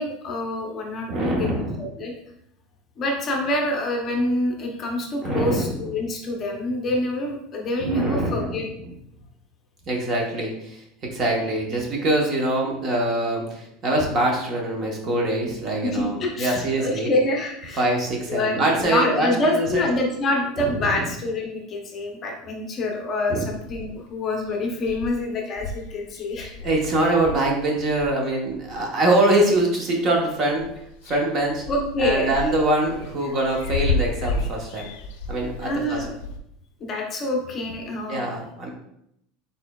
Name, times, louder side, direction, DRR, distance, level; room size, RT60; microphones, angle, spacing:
voice 1, 0.0-2.1 3.0-8.7 15.8-17.8 18.3-26.5 31.7-32.5 35.6-36.1 36.8-38.3, left 1 dB, 30° left, 0 dB, 0.6 m, -26 dB
voice 2, 1.1-1.8 5.2-5.8 7.8-8.6 9.9-10.8 11.1-17.1 17.8-19.9 20.6-21.0 23.3-23.5 26.6-30.7 31.1-31.6 32.0-34.9 35.3-36.0 38.1-38.7, right 1 dB, 30° right, 0 dB, 0.9 m, -24 dB
sound 1, 23.5-24.1 24.5-24.6 24.8-28.9 29.4-30.2 30.5-36.4, left 3 dB, 75° left, 0.5 m, -32 dB
4.2 x 3.9 x 2.3 m, 0.76 s
supercardioid pair, 155°, 0 cm